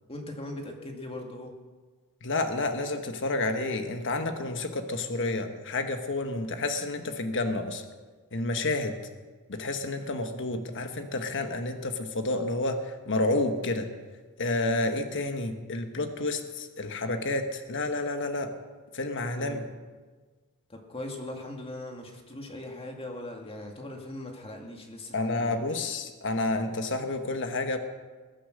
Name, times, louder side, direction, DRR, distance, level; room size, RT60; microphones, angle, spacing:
voice 1, 0.1-1.5 19.4-19.7 20.7-25.6, left 1 dB, 25° left, 2 dB, 2.1 m, -40 dB
voice 2, 2.2-7.8 8.3-9.0 9.5-13.9 14.4-18.5 18.9-19.6 25.1-27.8, left 2 dB, 55° left, 7 dB, 1.3 m, -30 dB
21.5 x 8.7 x 6.5 m, 1.4 s
head